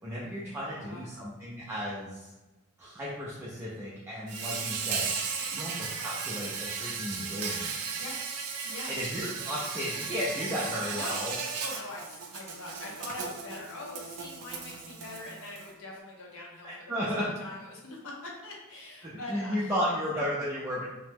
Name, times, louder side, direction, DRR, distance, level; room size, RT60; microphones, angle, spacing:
voice 1, 0.0-2.3 2.8-5.1 5.5-7.8 8.9-11.3 16.6-17.2 19.0-20.8, equal, 10° right, -7 dB, 0.4 m, -34 dB
voice 2, 0.6-1.1 5.5-5.7 7.9-8.2 8.6-8.9 10.9-11.2 11.6-19.7, left 2 dB, 65° left, -2 dB, 0.7 m, -43 dB
Insect, 4.3-15.7, right 5 dB, 85° right, 0.4 m, -36 dB
2.9 x 2.1 x 3.3 m, 1.1 s
head